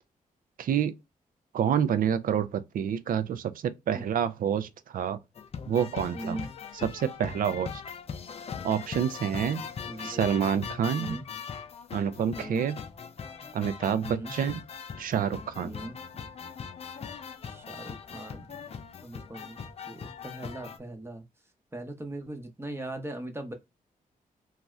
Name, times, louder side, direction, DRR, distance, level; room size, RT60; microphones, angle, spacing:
voice 1, 0.6-1.0 1.5-5.2 5.7-6.4 6.8-7.8 8.6-9.6 10.0-11.2 11.9-12.8 13.5-14.6 15.0-15.7, right 8 dB, 70° right, 0.4 m, -28 dB
sound 1, 5.3-20.8, left 6 dB, 45° left, 0.4 m, -40 dB
voice 2, 6.1-6.5 9.8-10.3 10.5-11.2 12.3-12.6 14.0-14.3 15.6-16.0 17.5-19.6 19.9-21.2 21.7-23.5, right 1 dB, 15° right, 0.7 m, -40 dB
2.6 x 2.4 x 3.1 m
cardioid pair, 95°, 15 cm